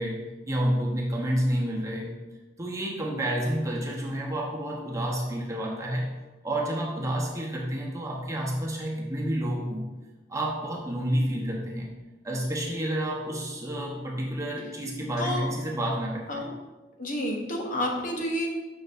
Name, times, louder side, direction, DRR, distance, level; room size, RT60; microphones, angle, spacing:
voice 1, 0.0-2.1 2.6-6.1 6.4-9.9 10.3-11.9 12.2-16.5, right 1 dB, 20° right, -2 dB, 0.9 m, -29 dB
voice 2, 15.2-15.5 16.3-16.5 17.0-18.5, left 1 dB, 45° left, 0 dB, 1.0 m, -29 dB
6.8 x 5.9 x 2.6 m, 1.2 s
head